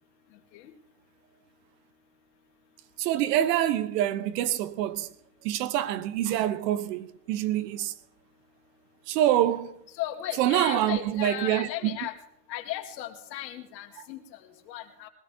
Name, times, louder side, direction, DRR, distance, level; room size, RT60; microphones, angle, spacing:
voice 1, 3.0-5.1 5.4-7.9 9.1-9.7 10.4-11.9, right 12 dB, 75° right, 1.3 m, -26 dB
voice 2, 9.9-12.1 12.5-15.1, left 13 dB, 80° left, 2.4 m, -36 dB
23.0 x 17.0 x 3.0 m
hypercardioid pair, 100°, 50 cm